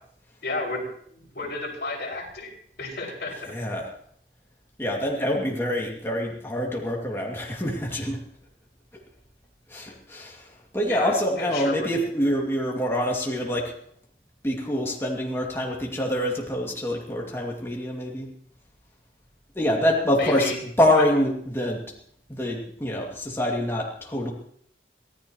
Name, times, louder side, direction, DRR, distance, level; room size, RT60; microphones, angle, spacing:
voice 1, 0.4-0.8 1.1-2.5 2.8-3.5 10.9-11.9 20.2-20.6 20.9-21.0, left 3 dB, 60° left, -3 dB, 6.5 m, -32 dB
voice 2, 3.5-3.9 4.8-8.2 9.7-13.7 14.4-18.3 19.5-21.8 22.3-24.3, left 1 dB, 15° left, -2 dB, 2.4 m, -26 dB
24.5 x 15.5 x 3.1 m, 0.65 s
head